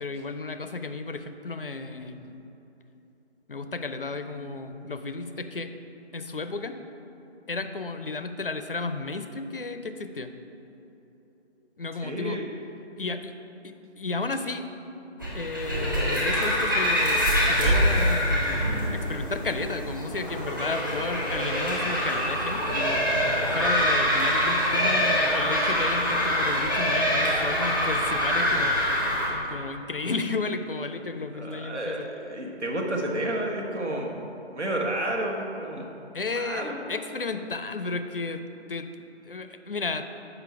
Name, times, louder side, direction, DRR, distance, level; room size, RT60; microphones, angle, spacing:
voice 1, 0.0-2.4 3.5-5.7 6.1-6.8 7.5-10.3 11.8-12.4 13.0-13.4 13.6-14.7 15.3-23.0 23.5-28.8 29.2-32.1 36.1-38.4 38.7-38.9 39.2-40.1, left 3 dB, 55° left, 9 dB, 0.4 m, -33 dB
voice 2, 12.0-12.5 31.3-35.9 36.3-37.0, right 1 dB, 85° right, 0 dB, 1.4 m, -31 dB
sound 1, 15.2-29.3, equal, 20° right, 0.8 m, -25 dB
7.0 x 5.5 x 4.6 m, 2.9 s
figure-of-eight pair, 170°, 34 cm